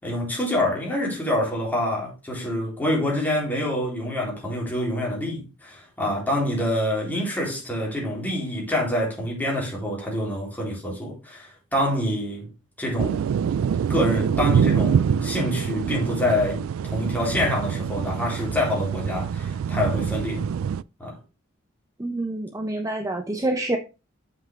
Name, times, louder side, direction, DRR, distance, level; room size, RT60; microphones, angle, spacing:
voice 1, 0.0-12.5 12.8-13.3 13.9-16.6 16.9-20.5 21.0-21.2, left 1 dB, 10° left, 3.8 m, -26 dB
sound 1, 13.0-20.8, right 7 dB, 85° right, 0.3 m, -25 dB
voice 2, 22.0-23.8, right 2 dB, 15° right, 0.7 m, -27 dB
7.2 x 6.5 x 3.6 m
head